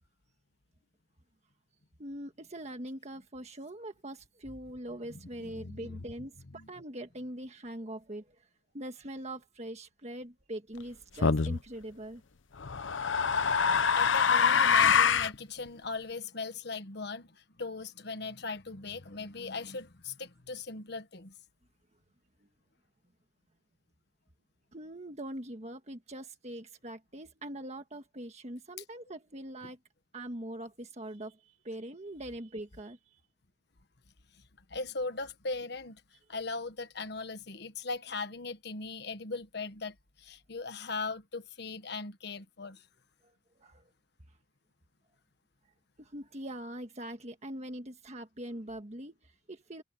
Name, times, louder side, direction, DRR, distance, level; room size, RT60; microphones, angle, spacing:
voice 1, 2.0-8.5 8.7-12.2 24.7-29.8 30.1-33.0 43.6-43.9 46.0-49.8, right 1 dB, 35° right, 1.5 m, -42 dB
voice 2, 5.1-6.0 6.5-6.7 13.9-21.3 34.7-36.0 36.3-42.8, left 3 dB, 60° left, 1.4 m, -39 dB
sound 1, 11.2-11.6 12.6-15.4, left 6 dB, 90° left, 0.8 m, -24 dB
open air
head